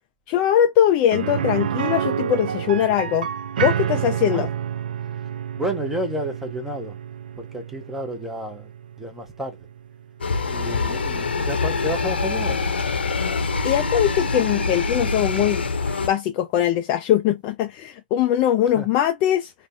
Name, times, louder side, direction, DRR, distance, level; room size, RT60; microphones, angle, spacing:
voice 1, 0.3-3.3 3.6-4.5 13.6-15.6 16.0-19.5, left 10 dB, 25° left, 0.3 m, -21 dB
sound 1, 1.1-10.9 11.2-11.3 13.7-13.8, right 9 dB, 55° right, 0.4 m, -29 dB
voice 2, 5.5-7.0 7.4-8.7 9.0-9.6 10.4-12.6 18.8-18.9, right 1 dB, 5° right, 0.7 m, -30 dB
sound 2, 10.2-16.1, left 4 dB, 80° left, 0.8 m, -24 dB
3.3 x 2.1 x 2.6 m
hypercardioid pair, 145°, 6 cm